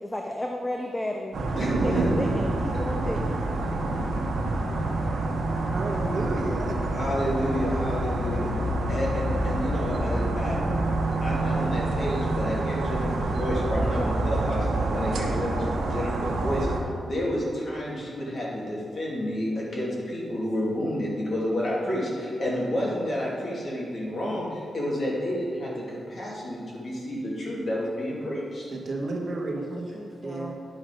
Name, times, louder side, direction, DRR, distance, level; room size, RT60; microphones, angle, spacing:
voice 1, 0.0-3.4 29.9-30.5, left 1 dB, 10° left, 2 dB, 0.6 m, -33 dB
sound 1, 1.3-16.8, right 2 dB, 75° right, 1.2 m, -27 dB
voice 2, 1.5-2.0 6.9-8.5 8.9-10.6 11.2-14.7 14.9-16.7 17.0-28.7, equal, 45° left, -5 dB, 2.6 m, -30 dB
voice 3, 5.7-7.1 28.7-29.9 30.2-30.5, right 2 dB, 45° right, 1 dB, 1.3 m, -32 dB
10.5 x 6.0 x 5.1 m, 2.3 s
wide cardioid pair, 130°, 0 cm